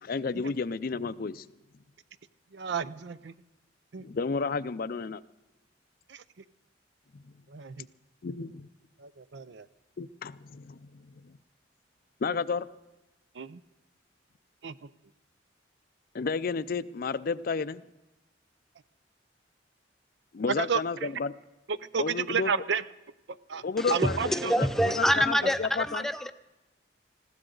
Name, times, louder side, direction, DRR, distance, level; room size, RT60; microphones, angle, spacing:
voice 1, 0.0-1.5 4.0-5.2 8.2-8.7 10.0-11.3 12.2-12.7 16.1-17.8 20.3-21.3 22.0-22.5 23.6-26.1, left 4 dB, 50° left, 15 dB, 0.4 m, -32 dB
voice 2, 2.5-3.3 3.9-4.0 6.1-6.2 7.5-7.8 9.0-9.6 13.4-13.6 14.6-14.7 20.6-21.1 21.9-22.8 23.5-23.6 23.9-24.5, right 6 dB, 65° right, 16 dB, 0.5 m, -31 dB
voice 3, 23.8-26.3, equal, ahead, 10 dB, 0.6 m, -26 dB
20.5 x 15.5 x 3.9 m, 1.0 s
head